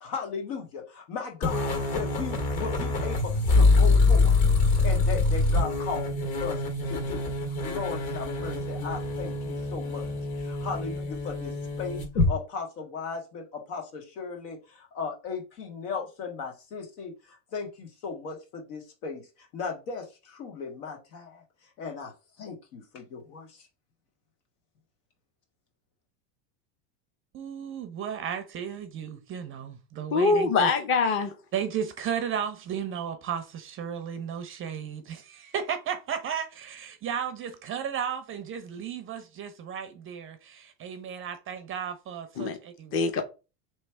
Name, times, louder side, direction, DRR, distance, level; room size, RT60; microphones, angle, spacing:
voice 1, 0.0-4.3 4.8-6.6 6.9-7.2 7.6-10.0 10.4-17.1 17.5-19.2 19.5-20.1 20.3-21.4 21.8-22.1 22.4-23.5, left 5 dB, 80° left, 1.6 m, -36 dB
sound 1, 1.4-12.3, left 3 dB, 50° left, 1.9 m, -25 dB
voice 2, 27.3-30.7 31.1-31.2 31.5-42.9, right 8 dB, 30° right, 0.4 m, -34 dB
voice 3, 30.1-31.3 42.4-42.6 42.9-43.2, left 4 dB, 25° left, 0.6 m, -23 dB
3.1 x 3.1 x 4.4 m
supercardioid pair, 130°, 47 cm